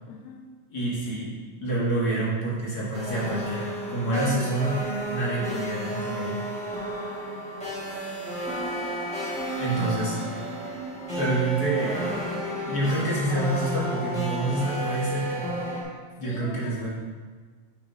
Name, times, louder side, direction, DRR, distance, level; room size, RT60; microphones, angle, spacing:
voice 1, 0.1-0.5 9.7-9.9 10.4-10.8 15.6-16.9, left 4 dB, 70° left, 1 dB, 1.8 m, -45 dB
voice 2, 0.7-1.3 1.6-4.8 5.1-6.4 9.6-10.4 11.2-12.3 12.7-15.5 16.2-16.9, right 2 dB, 40° left, -6 dB, 1.5 m, -27 dB
sound 1, 2.9-15.8, right 1 dB, 5° left, 0.7 m, -32 dB
9.7 x 5.7 x 2.7 m, 1.4 s
omnidirectional pair, 3.5 m